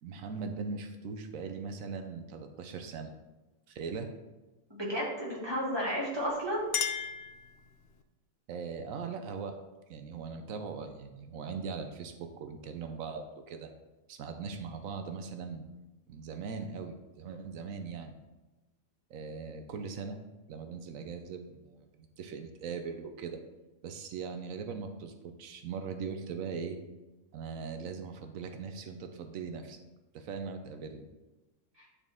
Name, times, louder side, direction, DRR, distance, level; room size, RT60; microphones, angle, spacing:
voice 1, 0.0-3.1 3.7-4.1 8.5-9.6 9.9-13.7 14.1-15.7 16.1-18.2 19.1-20.2 20.5-21.9 22.2-23.4 23.8-26.8 27.3-29.8 30.1-31.1, right 5 dB, 80° right, 6 dB, 1.1 m, -40 dB
voice 2, 4.7-6.6 31.8-31.9, equal, 20° right, -5 dB, 2.0 m, -32 dB
Chink clink, 6.2-8.0, left 8 dB, 60° left, 0.7 m, -36 dB
9.9 x 4.2 x 3.6 m, 1.1 s
omnidirectional pair, 1.4 m